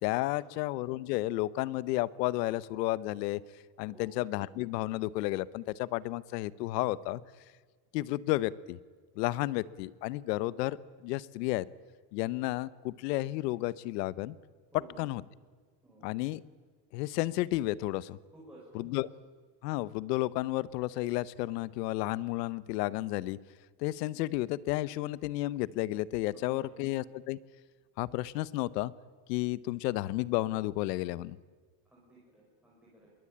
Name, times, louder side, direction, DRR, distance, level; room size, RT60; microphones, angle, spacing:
voice 1, 0.0-3.4 3.8-7.2 7.9-8.8 9.2-10.8 11.0-11.7 12.1-14.4 15.0-15.2 16.0-16.4 16.9-18.2 18.7-19.1 19.6-23.4 23.8-27.4 28.0-28.9 29.3-31.4, left 17 dB, 80° left, 19 dB, 1.0 m, -32 dB
voice 2, 14.7-15.1 15.8-16.1 18.3-19.0 26.3-26.9 31.9-33.1, right 2 dB, 5° right, -6 dB, 5.4 m, -55 dB
26.5 x 22.0 x 8.7 m, 1.5 s
cardioid pair, 175°, 48 cm